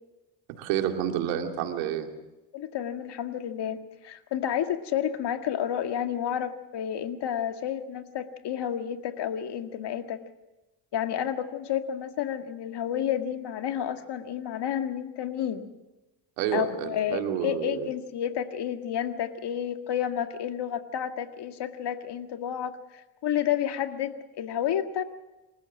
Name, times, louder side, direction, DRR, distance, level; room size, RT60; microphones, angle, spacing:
voice 1, 0.6-2.1 16.4-17.9, right 10 dB, 90° right, 4 dB, 2.5 m, -29 dB
voice 2, 2.5-10.2 10.9-15.7 16.5-25.0, left 9 dB, 60° left, 7 dB, 2.0 m, -30 dB
27.5 x 14.0 x 7.4 m, 1.0 s
supercardioid pair, 75°, 46 cm